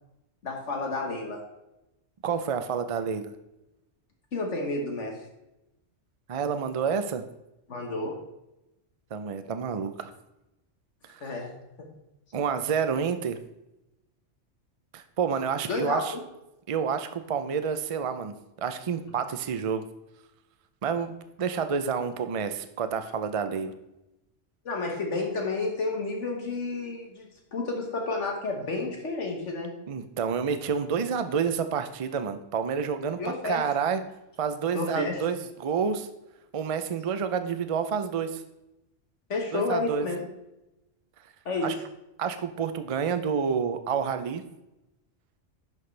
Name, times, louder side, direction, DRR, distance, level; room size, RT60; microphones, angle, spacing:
voice 1, 0.4-1.4 4.3-5.2 7.7-8.1 11.2-11.9 15.7-16.2 24.6-29.7 33.2-33.6 34.7-35.2 39.3-40.2 41.4-41.7, left 3 dB, 70° left, 1 dB, 1.6 m, -31 dB
voice 2, 2.2-3.3 6.3-7.2 9.1-10.1 11.1-11.3 12.3-13.4 14.9-16.1 16.7-19.8 20.8-23.7 29.9-34.0 34.4-36.1 36.5-38.4 39.5-40.1 41.6-41.7 42.2-44.4, right 6 dB, 60° right, 9 dB, 0.3 m, -29 dB
10.5 x 6.0 x 3.3 m, 0.92 s
omnidirectional pair, 1.3 m